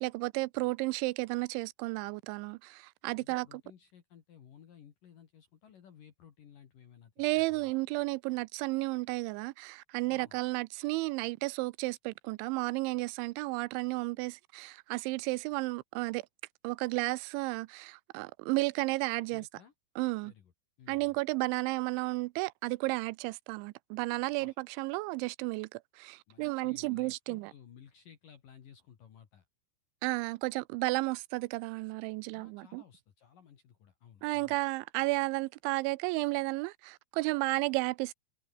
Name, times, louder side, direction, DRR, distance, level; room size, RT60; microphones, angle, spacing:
voice 1, 0.0-3.5 7.2-16.2 16.6-19.4 20.0-20.3 20.9-27.5 30.0-32.8 34.2-38.1, right 23 dB, 90° right, 3.0 m, -33 dB
voice 2, 3.2-7.7 10.1-10.4 19.3-19.7 20.2-20.5 20.8-21.2 24.4-24.6 26.3-29.4 32.3-34.5, left 8 dB, 55° left, 3.3 m, -57 dB
omnidirectional pair, 5.2 m